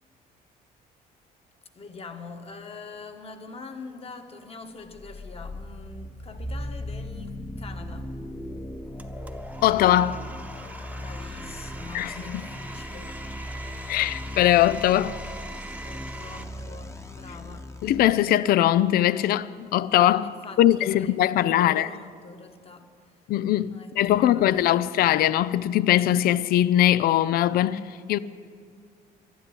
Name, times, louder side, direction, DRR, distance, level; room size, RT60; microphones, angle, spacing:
voice 1, 1.7-8.1 10.9-13.1 15.8-17.7 20.2-23.2 23.7-24.8, left 4 dB, 35° left, 1.5 m, -44 dB
sound 1, 4.9-18.1, left 1 dB, 15° left, 1.1 m, -38 dB
Domestic sounds home sounds, 9.0-16.4, right 1 dB, 10° right, 1.0 m, -42 dB
voice 2, 9.6-10.2 11.9-12.1 13.9-15.2 17.8-21.9 23.3-27.8 28.1-28.2, left 12 dB, 65° left, 0.4 m, -21 dB
12.0 x 11.0 x 9.9 m
cardioid pair, 110°, 17 cm